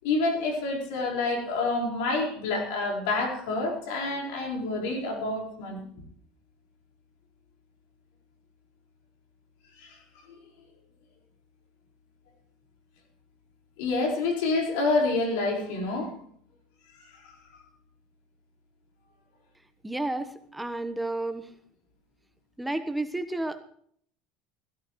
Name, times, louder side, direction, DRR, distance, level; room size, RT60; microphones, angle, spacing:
voice 1, 0.0-5.8 9.8-10.0 10.3-10.4 13.8-16.1 17.0-17.3, left 3 dB, 70° left, 1 dB, 4.7 m, -28 dB
voice 2, 19.8-21.5 22.6-23.6, right 2 dB, 10° right, 10 dB, 1.1 m, -31 dB
16.0 x 16.0 x 3.1 m, 0.62 s
hypercardioid pair, 75°, 0 cm